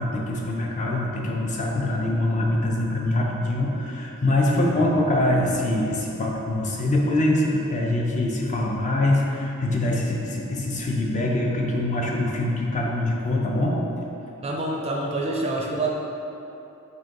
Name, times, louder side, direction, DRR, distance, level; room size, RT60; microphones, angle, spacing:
voice 1, 0.0-13.8, left 1 dB, 35° left, -1 dB, 0.5 m, -24 dB
voice 2, 4.5-4.9 14.4-15.9, right 2 dB, 30° right, -1 dB, 0.4 m, -27 dB
6.1 x 2.2 x 3.8 m, 2.8 s
head